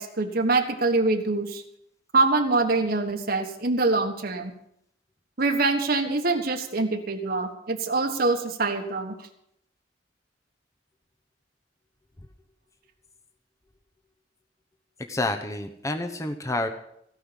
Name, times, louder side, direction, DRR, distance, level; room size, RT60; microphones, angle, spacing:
voice 1, 0.0-1.6 2.1-4.5 5.4-9.1, right 3 dB, 55° right, 4 dB, 1.4 m, -24 dB
voice 2, 15.0-16.7, left 2 dB, 20° left, 5 dB, 1.0 m, -29 dB
17.0 x 5.7 x 9.9 m, 0.74 s
head